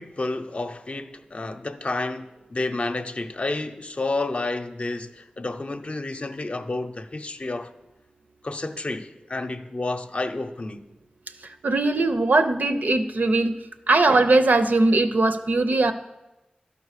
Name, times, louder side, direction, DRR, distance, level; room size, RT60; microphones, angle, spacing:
voice 1, 0.0-7.7 8.4-10.9, left 2 dB, 45° left, 0.6 m, -30 dB
voice 2, 11.6-13.5 13.9-15.9, right 2 dB, 75° right, 0.6 m, -20 dB
12.0 x 5.2 x 6.6 m
wide cardioid pair, 75°, 3 cm